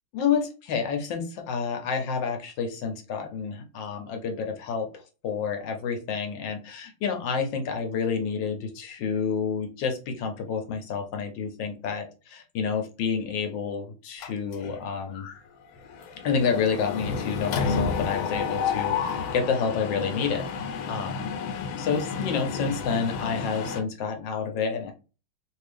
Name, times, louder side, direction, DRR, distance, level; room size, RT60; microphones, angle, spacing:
voice 1, 0.1-15.2 16.2-20.4 20.9-24.9, left 6 dB, 70° left, 5 dB, 1.3 m, -29 dB
Mechanisms, 14.2-14.8 15.2-15.4 15.6-23.8, left 5 dB, 85° left, 1.5 m, -31 dB
3.1 x 2.6 x 3.3 m, 0.33 s
omnidirectional pair, 2.2 m